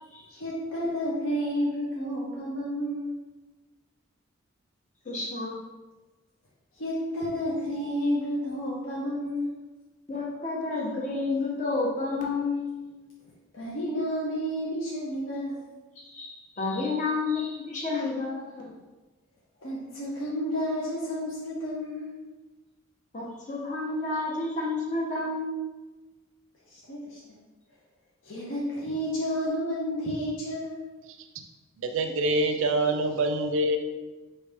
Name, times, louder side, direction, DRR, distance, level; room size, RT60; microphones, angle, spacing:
voice 1, 0.3-3.2 6.7-9.6 13.5-15.6 19.6-22.1 26.7-27.2 28.2-30.8, equal, 65° left, -6 dB, 0.8 m, -31 dB
voice 2, 5.1-5.6 10.1-12.9 16.0-18.7 23.1-25.5, left 3 dB, 35° left, -3 dB, 0.9 m, -30 dB
voice 3, 31.8-33.8, right 1 dB, 70° right, 6 dB, 0.5 m, -25 dB
4.8 x 2.7 x 3.4 m, 1.2 s
head